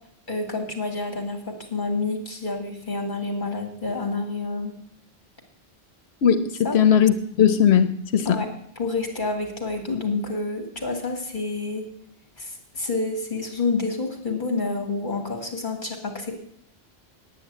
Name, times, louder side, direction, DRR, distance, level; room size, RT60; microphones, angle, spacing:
voice 1, 0.3-4.7 6.6-6.8 8.2-11.9 12.4-16.3, left 3 dB, 50° left, 3 dB, 2.6 m, -28 dB
voice 2, 6.2-8.4, left 8 dB, 80° left, 11 dB, 1.0 m, -19 dB
9.3 x 9.3 x 8.3 m, 0.68 s
omnidirectional pair, 1.1 m